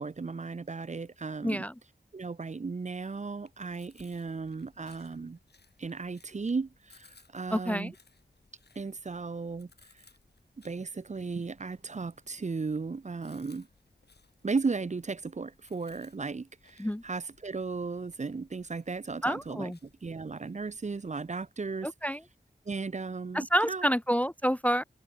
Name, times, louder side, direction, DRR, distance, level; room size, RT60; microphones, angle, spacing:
voice 1, 0.0-1.6 2.1-5.4 5.8-7.1 7.3-7.9 8.8-9.7 10.6-13.7 14.4-19.7 20.0-21.9 22.7-23.8, right 4 dB, 40° right, 0.6 m, -35 dB
voice 2, 1.4-1.7 7.5-7.9 16.8-17.0 19.2-19.8 21.8-22.2 23.3-24.8, equal, 10° left, 0.5 m, -28 dB
Chewing mastication, 3.4-21.5, left 4 dB, 70° left, 4.7 m, -64 dB
wide cardioid pair, 50°, 18 cm